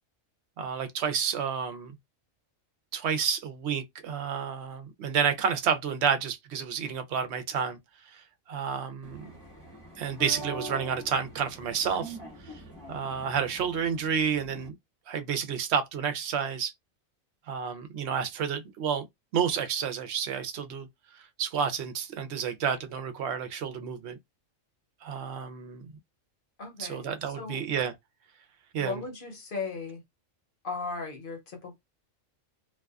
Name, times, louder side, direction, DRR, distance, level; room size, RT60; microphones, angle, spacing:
voice 1, 0.6-1.9 2.9-7.8 8.1-9.2 10.0-12.2 12.5-12.6 12.9-14.7 15.1-16.7 17.5-19.1 19.3-20.9 21.2-24.2 25.0-25.8 26.8-27.9 28.7-29.0, right 7 dB, 60° right, 0.8 m, -30 dB
sound 1, 9.0-14.7, right 1 dB, 10° right, 1.0 m, -43 dB
voice 2, 26.6-27.1 27.4-27.6 28.8-30.0 30.6-31.7, left 4 dB, 50° left, 0.9 m, -36 dB
2.5 x 2.3 x 2.3 m
omnidirectional pair, 1.4 m